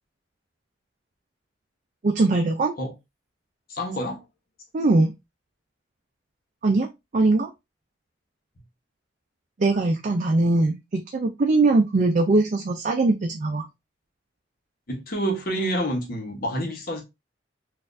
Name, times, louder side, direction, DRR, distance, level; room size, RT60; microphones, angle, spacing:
voice 1, 2.0-2.7 4.7-5.1 6.6-7.5 9.6-13.7, right 2 dB, 45° right, 0.4 m, -21 dB
voice 2, 3.7-4.2 14.9-17.0, right 1 dB, 55° left, 1.0 m, -28 dB
4.1 x 2.5 x 2.5 m
head